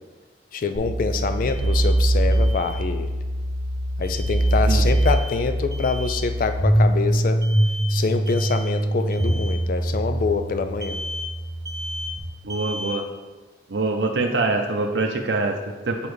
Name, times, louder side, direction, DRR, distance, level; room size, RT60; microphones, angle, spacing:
voice 1, 0.5-3.1 4.0-7.4 7.9-11.0, left 5 dB, 50° left, 8 dB, 0.3 m, -25 dB
sound 1, 0.7-12.2, right 1 dB, 5° right, 1.4 m, -23 dB
Alarm, 1.5-1.9 2.3-2.8 4.0-4.5 4.9-5.3 5.7-6.2 7.4-7.9 8.3-8.7 9.1-9.5 10.8-11.3 11.6-12.1 12.5-13.0, left 1 dB, 20° right, 0.5 m, -36 dB
voice 2, 12.4-13.0 13.7-16.0, right 3 dB, 70° right, 3 dB, 0.6 m, -24 dB
7.0 x 5.1 x 3.2 m, 1.3 s
head